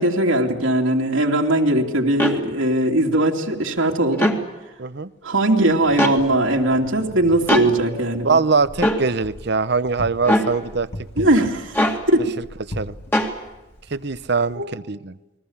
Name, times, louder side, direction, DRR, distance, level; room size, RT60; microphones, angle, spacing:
voice 1, 0.0-4.3 5.2-8.4 11.2-11.8 12.1-12.2 14.5-14.7, right 1 dB, 75° right, -1 dB, 2.8 m, -19 dB
sound 1, 2.2-2.4 4.1-4.4 6.0-6.2 7.5-7.7 8.8-9.0 10.2-10.5 11.7-12.0 13.1-13.3, equal, 10° left, 2.1 m, -19 dB
voice 2, 4.8-5.1 8.2-10.9 11.2-11.4 12.4-12.5 12.8-12.9 13.9-15.2, right 4 dB, 55° right, 14 dB, 0.8 m, -22 dB
Wind, 5.7-14.6, equal, 50° left, 2.4 m, -39 dB
29.5 x 21.5 x 7.2 m, 1.0 s
head